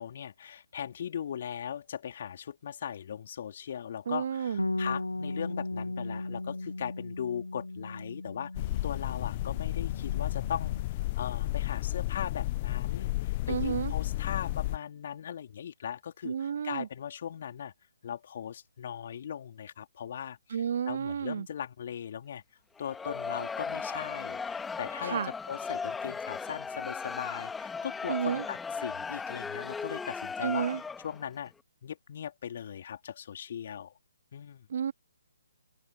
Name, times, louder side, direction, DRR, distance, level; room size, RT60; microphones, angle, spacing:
voice 1, 0.0-10.8 11.1-17.7 18.0-22.4 22.8-30.7 31.0-31.5 31.8-33.9 34.3-34.7, left 9 dB, 45° left, 4.2 m, -39 dB
voice 2, 4.1-4.6 13.5-13.9 16.2-16.9 20.5-21.5 25.0-25.3 28.1-28.4 30.4-30.8 34.7-34.9, right 7 dB, 50° right, 0.8 m, -31 dB
Bass guitar, 4.6-10.8, left 2 dB, 85° left, 1.4 m, -37 dB
sound 1, 8.5-14.8, left 18 dB, 30° left, 0.4 m, -32 dB
Crowd, 22.8-31.2, left 5 dB, 5° left, 2.3 m, -37 dB
open air
figure-of-eight pair, 140°, 0 cm